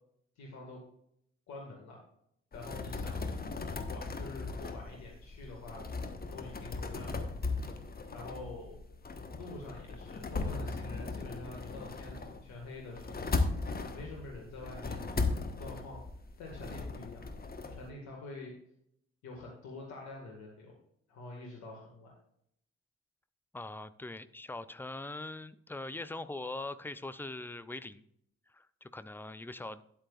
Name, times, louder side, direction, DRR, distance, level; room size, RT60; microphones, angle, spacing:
voice 1, 0.4-0.8 1.5-2.0 2.5-3.4 3.9-5.8 6.3-7.3 8.1-8.8 9.3-13.3 13.9-15.1 15.6-16.0 16.4-17.2 17.7-18.5 19.2-20.7 21.1-22.1, left 2 dB, 60° left, -1 dB, 2.1 m, -46 dB
sound 1, 2.5-17.9, left 3 dB, 30° left, 1.3 m, -37 dB
voice 2, 23.5-28.0 28.5-29.8, left 2 dB, 5° left, 15 dB, 0.6 m, -42 dB
13.0 x 9.0 x 2.5 m, 0.70 s
figure-of-eight pair, 40°, 32 cm